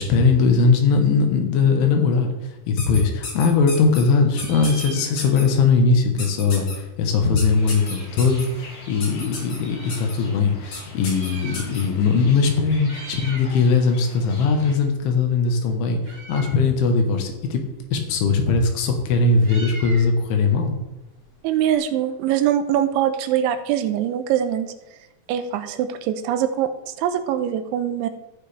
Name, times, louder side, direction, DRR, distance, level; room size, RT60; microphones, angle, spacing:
voice 1, 0.0-17.6 17.9-20.8, left 4 dB, 85° left, 4 dB, 3.7 m, -20 dB
sound 1, 2.8-4.0 4.4-4.9 5.2-5.4 6.2-6.7 7.4-8.4 9.0-9.6 9.9-10.1 10.7-10.8 11.0-11.8, left 3 dB, 40° left, 2.9 m, -32 dB
Meow, 3.1-4.0 4.3-5.6 5.8-5.9 6.1-8.2 8.9-10.1 10.8-12.0 12.3-12.5 12.8-13.6 13.9-21.8, right 3 dB, 45° right, 2.2 m, -43 dB
sound 2, 7.5-14.7, left 2 dB, 60° left, 4.7 m, -43 dB
voice 2, 21.4-24.7 25.3-28.1, right 10 dB, 90° right, 9 dB, 3.1 m, -23 dB
15.0 x 6.8 x 3.4 m, 1.0 s
omnidirectional pair, 5.3 m